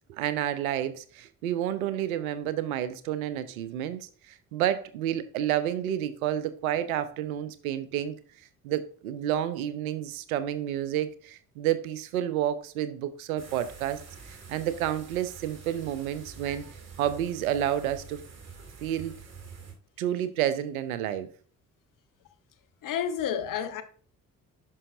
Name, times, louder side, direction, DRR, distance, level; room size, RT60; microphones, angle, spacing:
voice 1, 0.1-8.2 8.6-14.0 14.5-16.6 17.0-18.2 18.8-19.1 20.0-21.3, right 11 dB, 70° right, 0.7 m, -30 dB
sound 1, 13.4-19.7, right 5 dB, 35° right, 2.3 m, -47 dB
voice 2, 22.8-23.8, left 8 dB, 50° left, 0.9 m, -30 dB
11.0 x 5.5 x 2.6 m
figure-of-eight pair, 40°, 43 cm